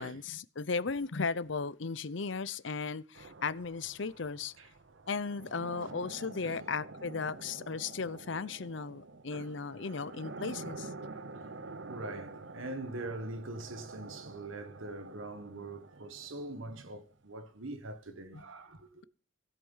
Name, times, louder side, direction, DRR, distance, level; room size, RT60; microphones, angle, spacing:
voice 1, 0.0-4.5 5.1-10.9 18.3-18.4, left 4 dB, 65° left, 0.7 m, -36 dB
sound 1, 3.1-17.0, right 3 dB, 60° right, 0.8 m, -48 dB
voice 2, 11.1-19.0, right 2 dB, 75° right, 1.6 m, -43 dB
16.5 x 8.2 x 5.6 m
head